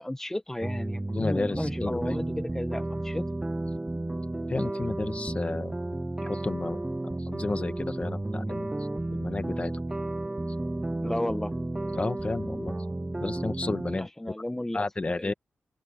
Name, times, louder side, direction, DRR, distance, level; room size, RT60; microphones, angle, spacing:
voice 1, 0.0-3.3 11.0-11.5 14.0-15.3, left 1 dB, 10° left, 1.2 m, -33 dB
sound 1, 0.6-14.0, right 2 dB, 15° right, 0.8 m, -32 dB
voice 2, 1.1-2.2 4.5-5.8 6.2-6.8 7.2-9.7 11.9-12.7 13.2-14.1 14.7-15.3, left 3 dB, 30° left, 1.7 m, -32 dB
open air
wide cardioid pair, 90°, 4 cm